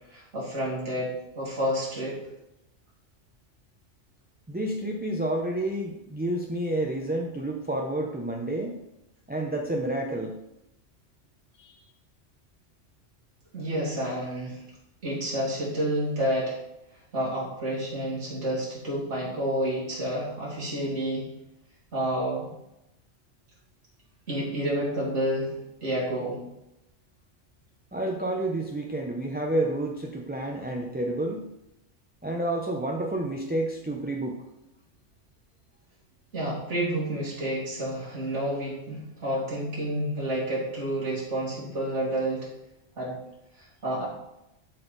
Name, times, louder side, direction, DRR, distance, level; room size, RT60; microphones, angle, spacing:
voice 1, 0.1-2.2 13.5-14.6 15.0-16.6 17.1-21.2 21.9-22.5 24.3-25.5 25.8-26.4 36.3-42.5 43.0-43.2 43.6-44.1, right 1 dB, 65° right, -6 dB, 2.8 m, -29 dB
voice 2, 4.5-8.8 9.3-10.4 11.6-11.7 27.9-31.5 32.2-34.4, right 1 dB, 10° right, 0 dB, 0.5 m, -29 dB
12.0 x 4.1 x 4.0 m, 0.88 s
omnidirectional pair, 1.3 m